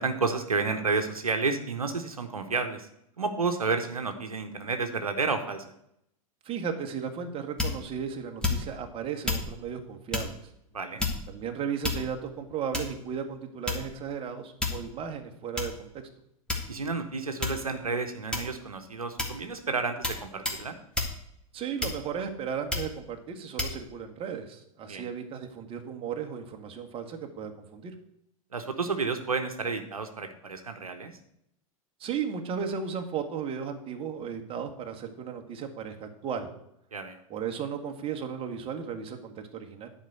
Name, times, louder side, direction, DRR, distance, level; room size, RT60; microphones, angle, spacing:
voice 1, 0.0-2.9 3.2-5.6 10.7-11.0 16.7-20.8 24.9-25.0 28.5-31.1 36.9-37.2, right 4 dB, 80° right, 6 dB, 1.1 m, -31 dB
voice 2, 6.4-10.4 11.3-15.9 21.5-27.9 32.0-36.5 37.3-39.9, right 7 dB, 30° right, 4 dB, 1.6 m, -35 dB
sound 1, 7.6-7.9 8.4-8.8 9.2-9.5 10.1-10.3 11.0-11.4 11.8-12.3 12.7-13.0 13.7-14.0 14.6-14.9 15.6-15.7 16.5-16.9 17.4-17.7 18.3-18.7 19.2-19.4 20.0-20.2 20.4-20.6 20.9-21.2 21.8-22.2 22.7-22.9 23.6-23.8, left 3 dB, 5° left, 2.0 m, -30 dB
10.5 x 5.0 x 7.9 m, 0.75 s
figure-of-eight pair, 90°, 18 cm